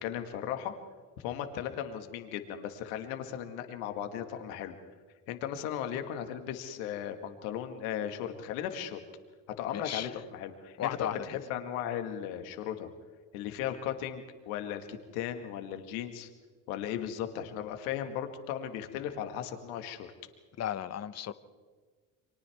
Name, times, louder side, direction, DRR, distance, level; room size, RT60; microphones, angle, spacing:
voice 1, 0.0-0.7 1.2-4.7 5.3-9.0 9.6-12.9 13.3-16.3 16.7-20.1, left 10 dB, 80° left, 6 dB, 2.0 m, -36 dB
voice 2, 9.7-10.1 10.8-11.3 20.6-21.3, left 10 dB, 35° left, 13 dB, 1.0 m, -34 dB
30.0 x 24.5 x 3.6 m, 1.5 s
hypercardioid pair, 75°, 42 cm